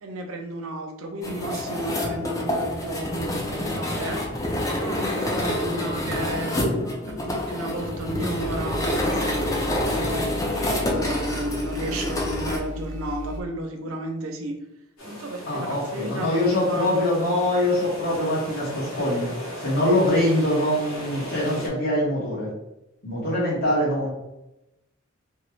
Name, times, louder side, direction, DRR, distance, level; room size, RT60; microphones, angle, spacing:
voice 1, 0.0-4.3 4.7-6.6 7.1-14.5 15.0-17.1, right 1 dB, 80° right, 4 dB, 0.5 m, -33 dB
sound 1, 1.2-12.6, left 1 dB, 15° left, 0.4 m, -27 dB
sound 2, 8.4-13.4, left 1 dB, 35° right, 0.5 m, -34 dB
sound 3, 15.0-21.7, equal, 75° left, 1.1 m, -37 dB
voice 2, 15.5-19.3 19.6-22.5 23.0-24.1, left 1 dB, 45° left, -6 dB, 1.3 m, -23 dB
3.0 x 2.2 x 3.1 m, 0.91 s
head